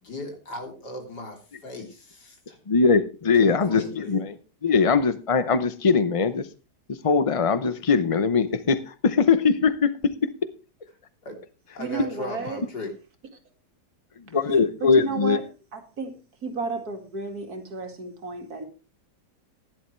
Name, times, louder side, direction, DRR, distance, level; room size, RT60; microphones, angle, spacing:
voice 1, 0.0-2.6 3.3-4.2 11.2-11.4 11.7-12.9, left 2 dB, 70° left, 3.9 m, -37 dB
voice 2, 2.7-4.4 4.6-6.5 6.9-10.3 14.2-15.4, left 5 dB, 55° left, 0.3 m, -21 dB
voice 3, 11.8-12.6 14.5-15.4 15.7-16.1 16.4-18.6, right 3 dB, 60° right, 2.5 m, -32 dB
16.0 x 11.0 x 3.2 m
omnidirectional pair, 1.8 m